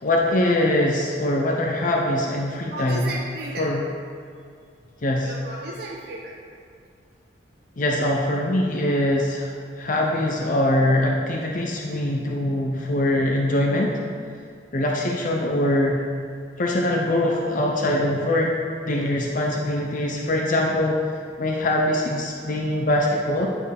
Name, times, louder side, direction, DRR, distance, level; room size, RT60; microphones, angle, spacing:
voice 1, 0.0-3.1 3.6-3.8 5.0-5.3 7.8-14.0 14.7-16.0 16.6-18.5 18.9-21.0 21.4-23.5, left 1 dB, 45° left, -1 dB, 0.6 m, -23 dB
voice 2, 2.7-3.7 5.2-6.3, right 1 dB, 60° right, -3 dB, 0.6 m, -34 dB
9.7 x 4.5 x 3.4 m, 2.3 s
head